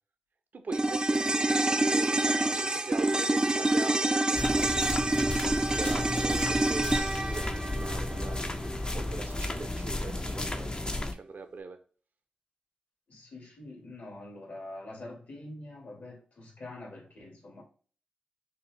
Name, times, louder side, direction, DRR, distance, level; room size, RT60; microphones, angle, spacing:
voice 1, 0.5-5.1 5.5-8.5 8.9-11.8, right 4 dB, 65° right, 7 dB, 0.7 m, -42 dB
sound 1, 0.7-9.2 9.5-9.6, right 2 dB, 25° right, 0.4 m, -27 dB
sound 2, 4.3-11.1, left 1 dB, 30° left, 0.5 m, -33 dB
voice 2, 13.1-17.6, left 2 dB, 65° left, -1 dB, 1.9 m, -45 dB
5.3 x 2.0 x 3.2 m, 0.40 s
cardioid pair, 45°, 3 cm